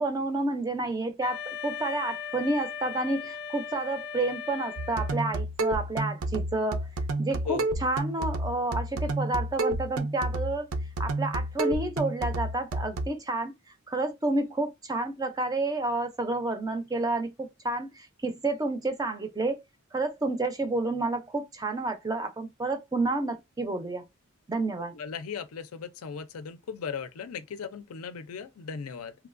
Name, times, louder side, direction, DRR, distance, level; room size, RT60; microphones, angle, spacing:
voice 1, 0.0-6.9 7.2-10.7 11.0-13.5 13.9-19.6 19.9-24.0 24.5-24.9, right 2 dB, 15° right, 0.4 m, -30 dB
Wind instrument woodwind instrument, 1.2-5.4, left 7 dB, 40° left, 0.5 m, -38 dB
sound 1, 4.8-13.1, right 2 dB, 75° right, 0.5 m, -30 dB
voice 2, 24.9-29.2, left 6 dB, 85° left, 0.4 m, -37 dB
3.1 x 2.2 x 2.4 m
head